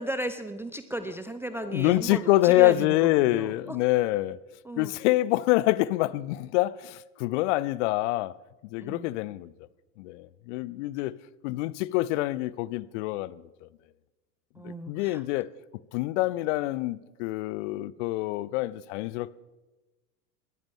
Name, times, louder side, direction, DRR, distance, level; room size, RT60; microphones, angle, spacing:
voice 1, 0.0-3.8 4.7-4.9 8.8-9.1 14.6-15.2, right 1 dB, 5° right, 0.4 m, -35 dB
voice 2, 1.6-4.4 4.8-8.3 8.7-9.5 10.0-11.2 11.4-13.7 14.6-15.5 15.9-19.3, left 17 dB, 50° left, 0.6 m, -26 dB
20.5 x 13.5 x 3.7 m
figure-of-eight pair, 80°, 47 cm